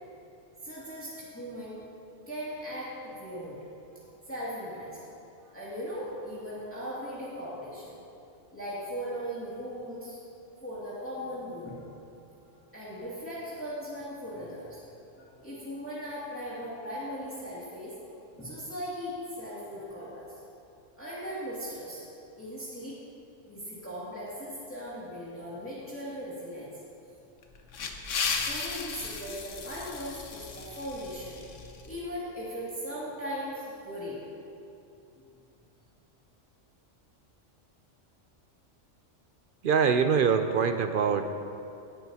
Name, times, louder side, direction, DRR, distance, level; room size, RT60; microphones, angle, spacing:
voice 1, 0.6-1.8 2.3-3.7 3.9-4.0 4.3-5.0 5.3-8.0 8.5-10.2 10.6-12.0 12.7-20.4 21.0-22.0 22.4-23.0 23.5-26.7 28.5-34.2, equal, 10° left, -10 dB, 2.3 m, -38 dB
sound 1, 27.4-32.0, left 5 dB, 80° left, 1.2 m, -35 dB
voice 2, 39.6-41.3, right 6 dB, 60° right, 8 dB, 0.6 m, -24 dB
17.0 x 11.0 x 2.8 m, 2.7 s
omnidirectional pair, 1.3 m